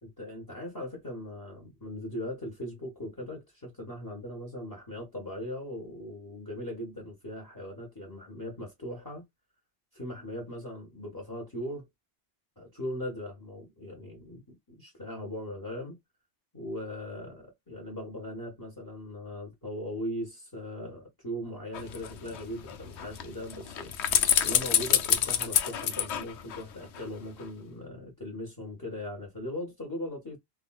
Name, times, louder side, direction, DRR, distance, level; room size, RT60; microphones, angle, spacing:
voice 1, 0.0-9.2 9.9-11.8 12.6-16.0 16.5-30.4, left 1 dB, 15° left, 1.4 m, -39 dB
sound 1, 21.7-27.1 27.4-27.5, left 9 dB, 85° left, 0.9 m, -28 dB
3.6 x 2.4 x 2.3 m
omnidirectional pair, 1.1 m